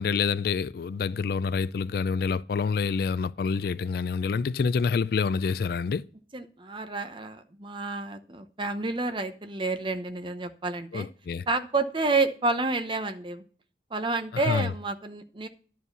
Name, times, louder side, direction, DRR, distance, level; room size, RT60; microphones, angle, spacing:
voice 1, 0.0-6.0 10.9-11.5 14.5-14.7, left 5 dB, 55° left, 0.3 m, -27 dB
voice 2, 6.3-11.1 11.5-13.4 13.9-15.5, right 3 dB, 30° right, 0.8 m, -29 dB
11.0 x 4.8 x 6.7 m
head